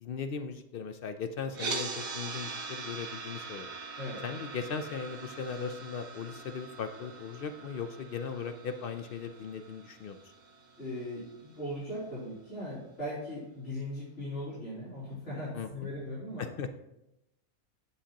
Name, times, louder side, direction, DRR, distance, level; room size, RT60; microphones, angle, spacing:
voice 1, 0.0-3.7 4.2-10.2 15.5-15.9 16.4-16.7, left 6 dB, 70° left, 8 dB, 0.5 m, -38 dB
sound 1, 1.5-11.6, right 4 dB, 75° right, 1.5 m, -42 dB
voice 2, 10.8-16.5, left 1 dB, 55° left, -10 dB, 3.5 m, -39 dB
9.9 x 8.3 x 2.9 m, 0.89 s
omnidirectional pair, 1.5 m